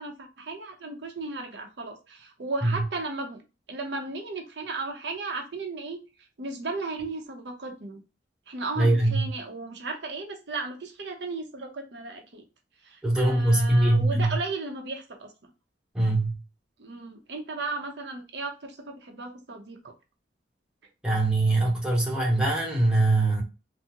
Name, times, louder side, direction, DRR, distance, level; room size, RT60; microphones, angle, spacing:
voice 1, 0.0-3.4 3.7-6.0 6.4-8.0 8.5-12.4 12.8-15.3 16.8-19.9, right 3 dB, 65° right, 0.6 m, -35 dB
voice 2, 8.8-9.3 13.0-14.4 15.9-16.4 21.0-23.4, right 2 dB, 5° right, 0.9 m, -22 dB
3.5 x 2.0 x 2.8 m
head